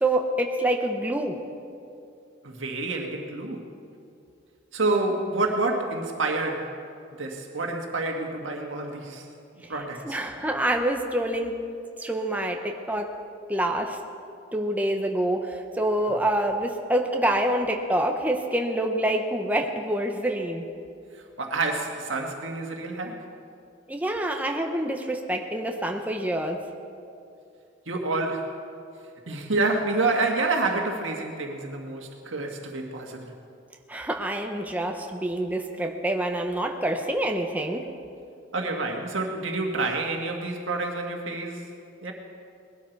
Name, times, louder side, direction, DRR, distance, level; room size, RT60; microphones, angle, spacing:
voice 1, 0.0-1.4 10.0-11.6 12.0-13.1 13.5-14.0 14.5-20.6 23.9-26.6 33.9-37.9, right 1 dB, 10° right, 2 dB, 0.8 m, -26 dB
voice 2, 2.4-3.6 4.7-6.7 7.2-9.3 9.7-10.2 21.4-23.2 27.9-28.5 29.3-33.2 38.5-41.6 42.0-42.1, right 3 dB, 85° right, 2 dB, 1.8 m, -28 dB
20.5 x 12.0 x 4.6 m, 2.5 s
head